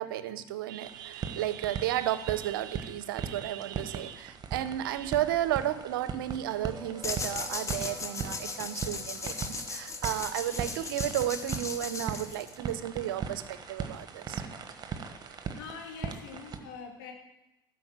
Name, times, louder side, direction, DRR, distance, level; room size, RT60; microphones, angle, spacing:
voice 1, 0.0-14.4, right 12 dB, 75° right, 13 dB, 0.6 m, -33 dB
sound 1, 0.8-16.6, right 6 dB, 35° right, 1.2 m, -40 dB
sound 2, 6.3-15.7, left 1 dB, 5° left, 2.8 m, -53 dB
sound 3, 7.0-12.7, left 3 dB, 25° left, 1.2 m, -37 dB
voice 2, 15.3-17.1, left 5 dB, 75° left, 1 dB, 2.1 m, -44 dB
12.0 x 5.2 x 7.4 m, 0.94 s
hypercardioid pair, 65°, 11 cm